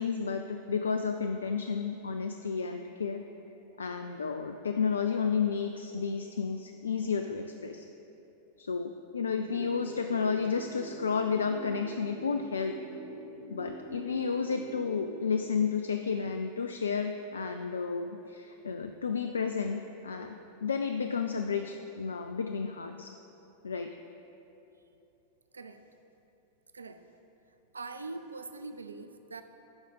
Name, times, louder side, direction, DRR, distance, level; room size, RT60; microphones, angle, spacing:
voice 1, 0.0-3.2 3.8-7.9 8.6-12.7 13.5-20.4 20.6-23.1 23.6-23.9, left 5 dB, 70° left, 6 dB, 0.3 m, -32 dB
sound 1, 9.4-15.4, right 5 dB, 45° right, 0.7 m, -44 dB
voice 2, 27.7-29.4, right 3 dB, 75° right, 9 dB, 0.4 m, -42 dB
11.5 x 4.9 x 5.4 m, 3.0 s
figure-of-eight pair, 90°, 0 cm